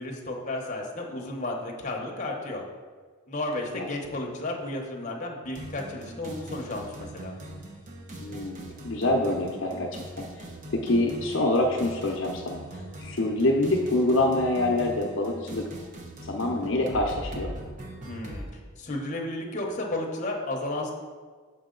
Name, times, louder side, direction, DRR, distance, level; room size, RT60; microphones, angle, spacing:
voice 1, 0.0-2.6 3.3-7.3 18.0-20.9, left 2 dB, 35° left, 0 dB, 0.9 m, -33 dB
sound 1, 5.5-18.5, right 1 dB, 35° right, 0.8 m, -41 dB
voice 2, 8.2-10.3 10.7-15.6 16.2-17.5, left 2 dB, 65° left, 0 dB, 0.7 m, -26 dB
6.2 x 6.1 x 3.8 m, 1.5 s
head